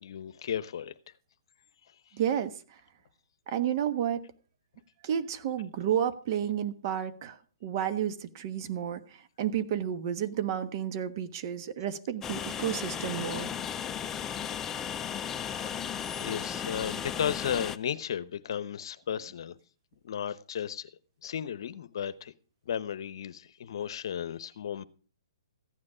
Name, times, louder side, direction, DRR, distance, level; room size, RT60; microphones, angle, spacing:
voice 1, 0.0-0.9 16.2-19.6 20.0-20.9 21.2-22.3 22.7-24.8, left 8 dB, 60° left, 0.9 m, -35 dB
voice 2, 2.1-2.5 3.5-4.2 5.0-7.4 7.6-9.0 9.4-13.5, right 9 dB, 45° right, 1.4 m, -31 dB
Train, 12.2-17.8, left 8 dB, 15° left, 0.6 m, -35 dB
15.0 x 9.7 x 5.0 m
hypercardioid pair, 140°, 3 cm